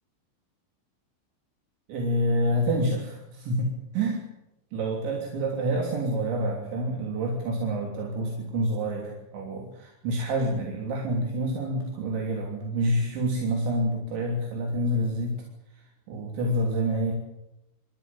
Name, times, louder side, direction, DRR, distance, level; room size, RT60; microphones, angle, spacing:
voice 1, 1.9-4.2 4.7-15.4 15.7-17.1, right 1 dB, 80° right, 0 dB, 5.5 m, -28 dB
27.5 x 15.0 x 9.0 m, 0.90 s
omnidirectional pair, 5.2 m